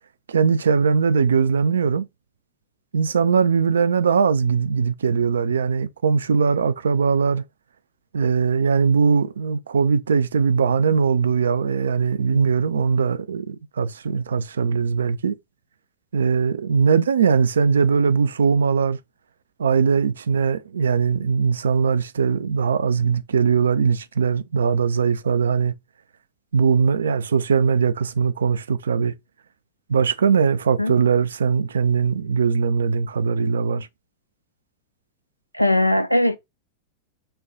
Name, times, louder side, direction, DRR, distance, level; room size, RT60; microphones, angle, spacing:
voice 1, 0.3-2.1 2.9-7.4 8.1-15.4 16.1-19.0 19.6-25.7 26.5-29.1 29.9-33.9, right 6 dB, 70° right, 0.4 m, -20 dB
voice 2, 35.5-36.4, left 1 dB, 90° left, 0.4 m, -19 dB
5.6 x 2.3 x 3.8 m
figure-of-eight pair, 90°, 0 cm